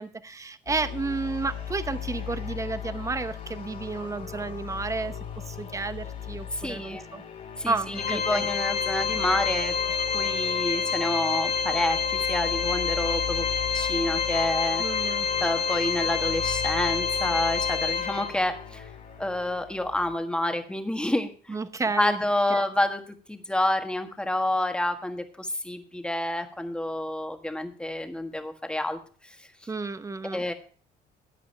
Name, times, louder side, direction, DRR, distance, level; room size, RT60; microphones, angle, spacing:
voice 1, 0.0-5.2 5.5-7.2 7.7-8.4 14.8-15.3 21.5-22.2 22.5-22.6 29.7-30.5, right 3 dB, 20° right, 12 dB, 0.8 m, -31 dB
sound 1, 0.7-20.1, left 8 dB, 50° left, 2.8 m, -39 dB
voice 2, 6.5-7.0 7.6-13.5 13.7-18.9 19.2-21.6 22.0-23.0 23.3-29.3 30.3-30.5, left 1 dB, 5° left, 6 dB, 1.5 m, -29 dB
Organ, 8.0-18.6, left 6 dB, 65° left, 2.1 m, -28 dB
14.5 x 9.3 x 3.3 m, 0.41 s
cardioid pair, 110°, 17 cm